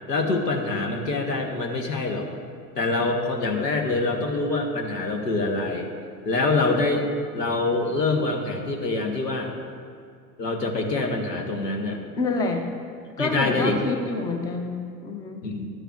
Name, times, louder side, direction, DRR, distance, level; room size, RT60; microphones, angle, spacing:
voice 1, 0.1-2.3 2.7-5.9 6.2-9.5 10.4-12.0 13.2-13.8 15.4-15.7, left 3 dB, 85° left, 3 dB, 1.1 m, -25 dB
voice 2, 12.2-12.7 13.2-15.4, left 3 dB, 10° left, 5 dB, 0.4 m, -27 dB
12.0 x 10.0 x 2.4 m, 2.3 s
figure-of-eight pair, 85°, 48 cm